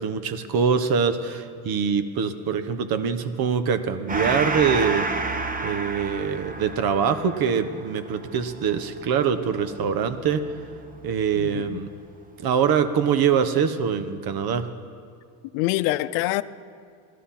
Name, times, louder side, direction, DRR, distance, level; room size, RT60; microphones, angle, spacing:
voice 1, 0.0-5.1 5.6-10.4 11.0-11.9 12.4-14.7, right 7 dB, 50° right, 1.2 m, -24 dB
Gong, 4.1-11.0, right 3 dB, 20° right, 1.0 m, -30 dB
voice 2, 11.3-11.8 15.5-16.4, left 17 dB, 75° left, 0.7 m, -25 dB
17.0 x 12.5 x 5.8 m
supercardioid pair, 100°, 45 cm